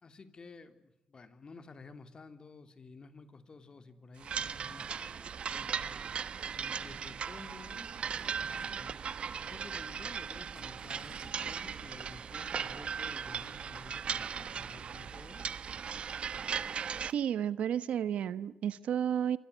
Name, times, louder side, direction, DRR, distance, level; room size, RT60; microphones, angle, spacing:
voice 1, 0.0-6.0 6.5-9.0 9.4-15.5, left 4 dB, 40° left, 10 dB, 3.1 m, -53 dB
sound 1, 3.9-4.0 4.3-6.8 7.3-7.7 8.1-9.7 10.0-10.2 10.5-12.3, right 2 dB, 25° right, 6.1 m, -58 dB
sound 2, 4.2-17.1, right 7 dB, 60° right, 1.2 m, -38 dB
voice 2, 17.0-19.4, right 9 dB, 80° right, 16 dB, 1.2 m, -32 dB
27.0 x 25.0 x 8.2 m, 0.86 s
cardioid pair, 80°, 2 cm